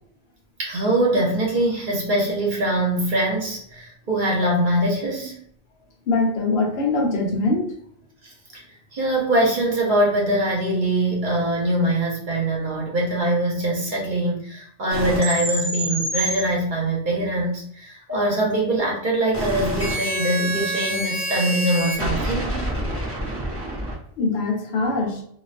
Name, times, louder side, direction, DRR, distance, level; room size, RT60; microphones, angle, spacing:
voice 1, 0.6-5.4 8.5-8.6 8.9-22.7, right 1 dB, 50° right, -3 dB, 0.9 m, -23 dB
voice 2, 6.1-7.7 24.2-25.2, left 3 dB, 75° left, 1 dB, 0.8 m, -22 dB
sound 1, 14.9-16.4 18.1-23.9, right 1 dB, 15° right, 0.8 m, -27 dB
2.3 x 2.2 x 2.4 m, 0.66 s
omnidirectional pair, 1.1 m